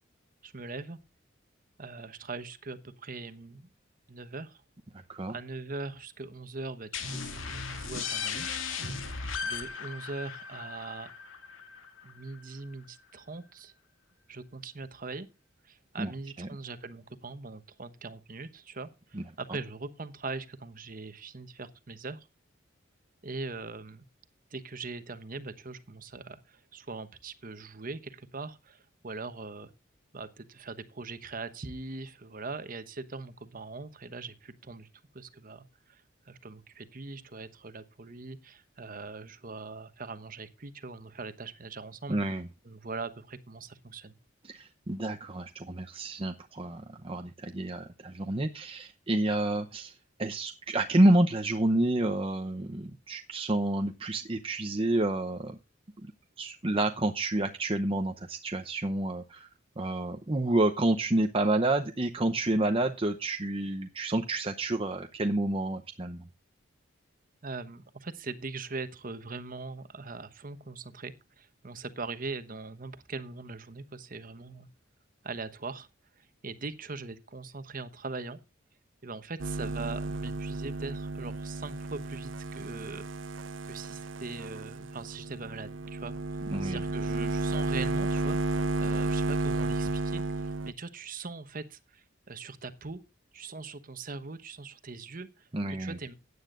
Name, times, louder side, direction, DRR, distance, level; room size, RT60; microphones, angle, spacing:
voice 1, 0.4-1.0 1.8-3.7 4.1-4.6 5.3-8.5 9.4-11.1 12.0-13.7 14.3-15.3 15.6-22.3 23.2-24.0 24.5-29.7 30.1-34.9 35.1-42.2 42.6-44.2 67.4-74.7 75.2-75.9 76.2-78.4 79.0-83.0 83.6-93.0 93.3-96.1, right 3 dB, 45° right, 1.1 m, -41 dB
sound 1, 6.9-12.4, left 5 dB, 80° left, 2.1 m, -37 dB
voice 2, 42.1-42.4 44.5-49.9 50.2-55.6 56.0-56.1 56.4-59.5 59.8-66.2 86.5-86.8 95.5-96.0, right 1 dB, 30° right, 0.7 m, -29 dB
sound 2, 79.4-90.7, right 3 dB, 70° right, 0.6 m, -32 dB
16.0 x 9.6 x 2.5 m
head